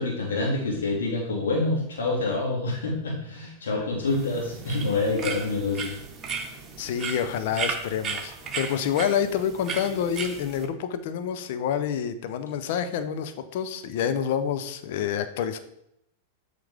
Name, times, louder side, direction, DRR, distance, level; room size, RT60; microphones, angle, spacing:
voice 1, 0.0-5.9, left 3 dB, 80° left, -2 dB, 2.3 m, -27 dB
sound 1, 4.1-10.6, right 5 dB, 25° right, 1.6 m, -35 dB
voice 2, 6.8-15.6, left 8 dB, 60° left, 10 dB, 0.7 m, -28 dB
8.0 x 4.9 x 3.5 m, 0.76 s
hypercardioid pair, 105°, 0 cm